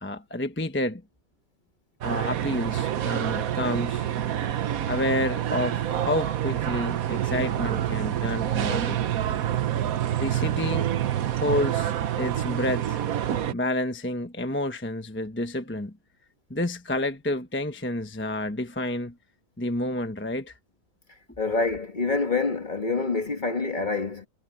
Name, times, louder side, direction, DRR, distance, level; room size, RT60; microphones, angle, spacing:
voice 1, 0.0-1.0 2.0-4.1 4.9-9.0 10.2-10.9 11.3-11.9 12.2-13.0 13.5-15.9 16.5-19.1 19.6-20.5, left 1 dB, 10° left, 0.9 m, -29 dB
sound 1, 2.0-13.5, right 11 dB, 60° right, 1.3 m, -27 dB
voice 2, 21.4-24.3, left 3 dB, 30° left, 1.5 m, -26 dB
omnidirectional pair, 1.8 m